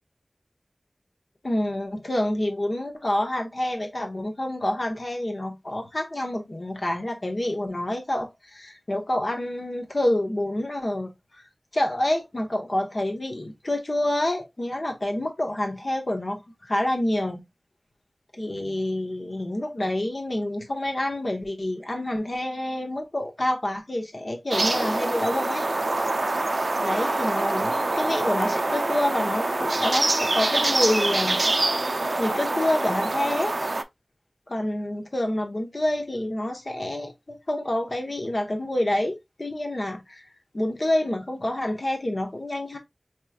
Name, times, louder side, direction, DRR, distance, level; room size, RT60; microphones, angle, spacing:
voice 1, 1.4-11.1 11.7-17.4 18.3-25.7 26.7-31.4 31.8-33.5 34.5-40.3 40.5-42.8, left 1 dB, 55° left, 1.0 m, -28 dB
sound 1, 24.5-33.8, right 2 dB, 65° right, 0.4 m, -25 dB
4.6 x 3.0 x 2.3 m
wide cardioid pair, 55°, 0 cm